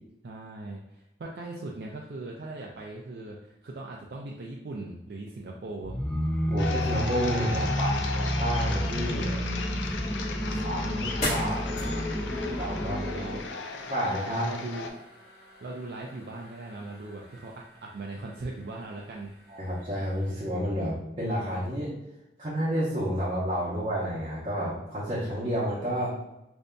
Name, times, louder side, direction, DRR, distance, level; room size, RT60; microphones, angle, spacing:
voice 1, 0.2-6.0 6.4-6.5 7.5-8.0 10.4-11.1 12.8-13.4 14.3-14.9 15.6-19.3, right 2 dB, 65° right, -2 dB, 0.4 m, -39 dB
sound 1, 5.8-13.5, equal, 5° left, 0.3 m, -30 dB
voice 2, 6.5-9.4 10.6-12.1 12.5-13.2 13.9-14.5 19.5-21.9 22.4-26.1, equal, 30° right, -8 dB, 0.7 m, -30 dB
sound 2, 6.6-14.9, left 3 dB, 90° left, 0.4 m, -36 dB
sound 3, 9.5-20.5, equal, 40° left, 1.5 m, -42 dB
5.1 x 2.6 x 2.2 m, 0.91 s
head